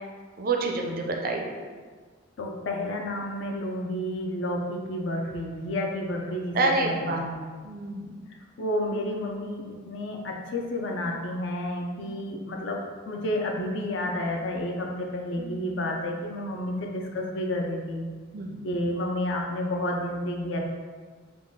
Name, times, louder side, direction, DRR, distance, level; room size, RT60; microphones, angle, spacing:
voice 1, 0.4-1.5 6.6-7.2 7.6-8.1 12.0-12.2 15.4-15.6 18.3-18.5, right 3 dB, 45° right, 2 dB, 0.4 m, -28 dB
voice 2, 2.4-7.4 8.6-18.0 18.6-20.6, left 1 dB, 65° left, 1 dB, 0.5 m, -30 dB
3.8 x 2.3 x 3.6 m, 1.5 s
head